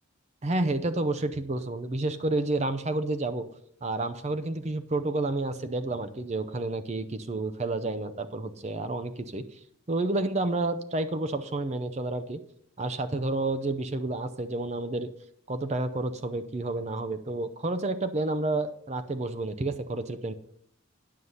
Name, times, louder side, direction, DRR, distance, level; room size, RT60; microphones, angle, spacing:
voice 1, 0.4-3.5 3.8-9.6 9.9-12.4 12.8-15.1 15.5-20.3, right 2 dB, 35° right, 10 dB, 0.6 m, -30 dB
9.5 x 6.6 x 5.6 m, 0.67 s
head